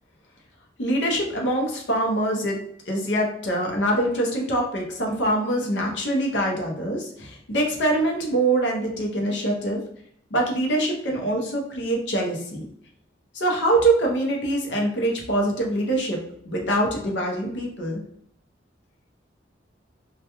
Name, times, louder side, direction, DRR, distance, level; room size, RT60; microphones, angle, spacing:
voice 1, 0.8-2.6 2.9-9.8 10.3-12.7 13.3-16.2 16.5-18.0, right 1 dB, 70° left, 0 dB, 0.7 m, -24 dB
2.3 x 2.2 x 2.8 m, 0.68 s
head